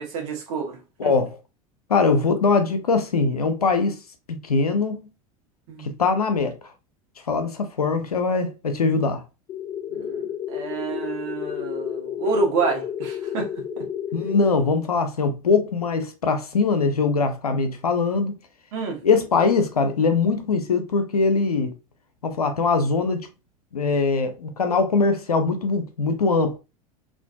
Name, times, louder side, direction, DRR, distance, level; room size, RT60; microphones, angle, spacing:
voice 1, 0.0-1.1 5.7-5.9 9.9-13.5 13.8-13.9 18.7-19.0, right 4 dB, 60° right, 1.0 m, -28 dB
voice 2, 1.0-1.4 1.9-4.0 4.3-5.1 5.8-6.6 7.3-9.2 14.1-18.4 19.0-21.7 22.2-23.3 23.7-26.6, left 4 dB, 90° left, 0.5 m, -22 dB
sound 1, 9.5-14.5, left 8 dB, 35° left, 0.6 m, -31 dB
2.5 x 2.4 x 2.2 m
figure-of-eight pair, 80°, 19 cm